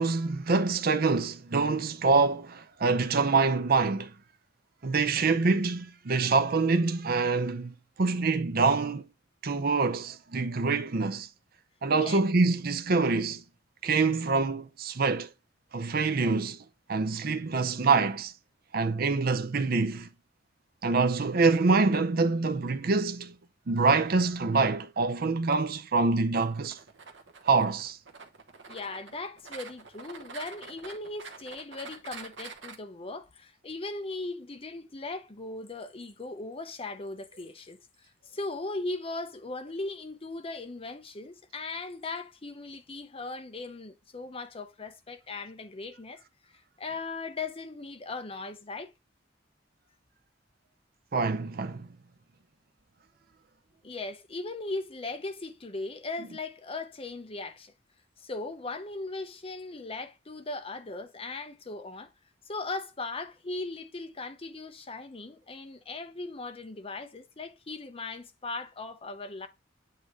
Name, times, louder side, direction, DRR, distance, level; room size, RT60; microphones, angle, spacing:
voice 1, 0.0-4.1 4.8-9.0 9.4-11.3 11.8-13.4 13.8-15.3 15.7-16.6 16.9-18.3 18.7-20.1 20.8-23.3 23.7-26.8 27.4-28.0 51.1-51.9, right 4 dB, 55° right, 0.6 m, -25 dB
sound 1, 26.3-32.8, right 5 dB, 75° right, 1.1 m, -46 dB
voice 2, 28.7-37.8 38.3-46.2 46.5-48.9 53.8-57.7 58.2-62.1 62.5-69.5, left 3 dB, 30° left, 0.8 m, -38 dB
8.4 x 2.9 x 4.8 m
head